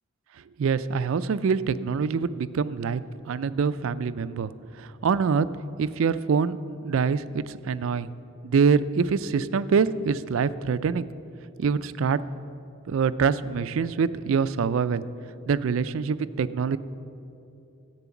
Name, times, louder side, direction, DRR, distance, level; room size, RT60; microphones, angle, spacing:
voice 1, 0.6-3.0 3.3-4.5 4.8-5.5 5.8-8.1 8.4-11.1 11.6-12.2 12.9-15.0 15.5-16.8, right 5 dB, 70° right, 15 dB, 0.4 m, -25 dB
10.5 x 8.4 x 7.0 m, 2.7 s
head